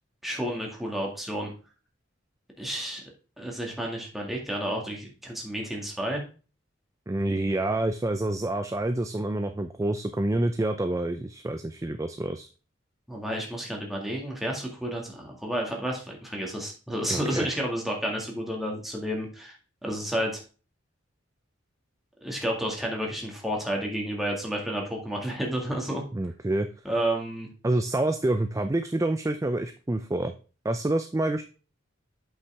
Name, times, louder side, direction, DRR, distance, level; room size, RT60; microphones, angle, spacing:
voice 1, 0.2-1.5 2.6-3.0 3.4-6.2 13.1-19.6 19.8-20.4 22.2-26.0 26.8-27.5, right 1 dB, ahead, -1 dB, 2.0 m, -31 dB
voice 2, 7.1-12.5 17.1-17.5 26.1-26.7 27.6-30.3 30.6-31.4, right 1 dB, 15° right, 8 dB, 0.4 m, -27 dB
8.1 x 5.6 x 3.5 m, 0.35 s
head